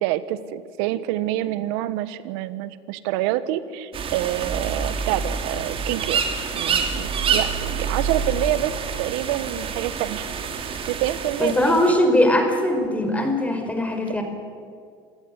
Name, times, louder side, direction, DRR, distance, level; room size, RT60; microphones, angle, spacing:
voice 1, 0.0-6.2 6.5-10.2 10.9-12.0 14.1-14.2, right 14 dB, 80° right, 14 dB, 1.4 m, -27 dB
sound 1, 3.9-11.9, right 6 dB, 40° right, 3.0 m, -27 dB
voice 2, 11.4-14.2, left 1 dB, 10° left, 5 dB, 5.1 m, -20 dB
27.5 x 16.0 x 9.7 m, 2.2 s
supercardioid pair, 105°, 14 cm